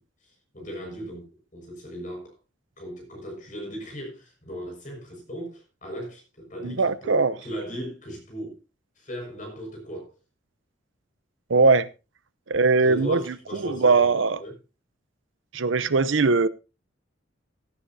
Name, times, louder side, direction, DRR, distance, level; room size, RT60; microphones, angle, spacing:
voice 1, 0.0-2.4 2.8-8.6 9.0-10.1 12.8-14.6, equal, 40° left, 5.9 m, -38 dB
voice 2, 6.6-7.3 11.5-11.9 12.5-13.2 13.5-14.4 15.5-16.5, right 4 dB, 70° right, 0.7 m, -20 dB
17.0 x 10.0 x 2.8 m
head